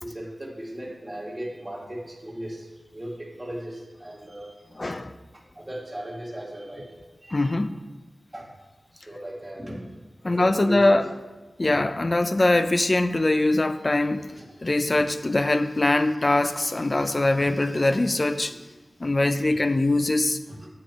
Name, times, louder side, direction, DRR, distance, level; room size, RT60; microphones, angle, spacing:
voice 1, 0.0-4.7 5.6-6.9 7.2-7.5 8.3-8.5 8.9-10.0 10.2-11.1 14.4-14.5 20.5-20.6, right 1 dB, 20° right, -3 dB, 1.9 m, -36 dB
voice 2, 4.7-5.2 7.3-7.7 10.2-11.1 11.6-18.6 19.0-20.4, left 2 dB, 40° left, 11 dB, 0.4 m, -22 dB
9.1 x 7.6 x 3.1 m, 1.2 s
wide cardioid pair, 70°, 0 cm